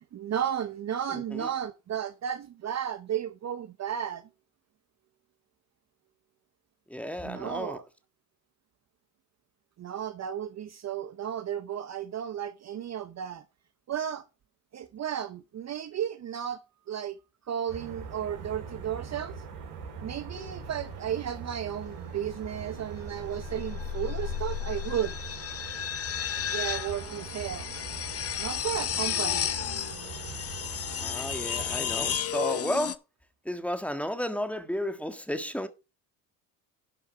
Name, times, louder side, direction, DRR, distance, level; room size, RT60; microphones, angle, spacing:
voice 1, 0.1-4.3 7.2-7.8 9.8-13.4 13.9-14.2 14.7-17.2 17.5-19.3 20.0-25.1 26.5-27.8 28.4-29.5, right 9 dB, 35° right, 0.8 m, -34 dB
voice 2, 1.1-1.5 6.9-7.8 31.0-33.0 33.4-35.7, equal, 5° left, 1.6 m, -33 dB
sound 1, 17.7-32.2, right 5 dB, 90° right, 4.6 m, -42 dB
sound 2, 20.3-20.7 22.9-32.9, left 9 dB, 30° left, 0.8 m, -33 dB
12.0 x 5.7 x 4.6 m
hypercardioid pair, 80°, 46 cm